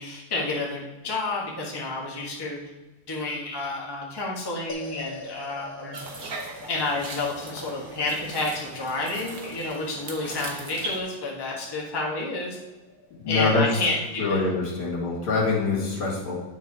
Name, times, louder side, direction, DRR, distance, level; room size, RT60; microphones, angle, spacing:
voice 1, 0.0-2.6 3.1-6.0 6.7-12.6 13.2-14.4, left 2 dB, 15° left, -3 dB, 1.2 m, -30 dB
sound 1, 4.7-15.1, left 2 dB, 30° left, 1.1 m, -46 dB
sound 2, 5.9-11.0, right 2 dB, 45° right, 1.4 m, -39 dB
voice 2, 13.1-13.7 14.2-16.3, left 3 dB, 75° left, -3 dB, 2.9 m, -25 dB
9.7 x 4.5 x 4.8 m, 1.1 s
omnidirectional pair, 2.4 m